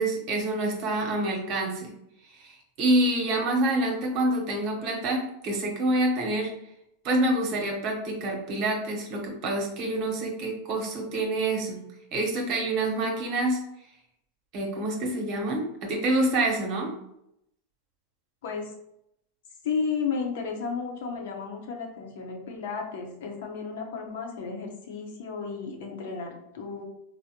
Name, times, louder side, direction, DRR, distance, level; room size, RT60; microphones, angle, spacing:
voice 1, 0.0-1.9 2.4-2.5 2.8-6.5 7.0-11.8 12.1-13.6 14.5-16.9, right 1 dB, 50° right, 0 dB, 1.0 m, -27 dB
voice 2, 18.4-18.7 19.6-26.8, left 5 dB, 75° left, 2 dB, 0.8 m, -33 dB
3.6 x 2.1 x 2.8 m, 0.78 s
hypercardioid pair, 110°, 0 cm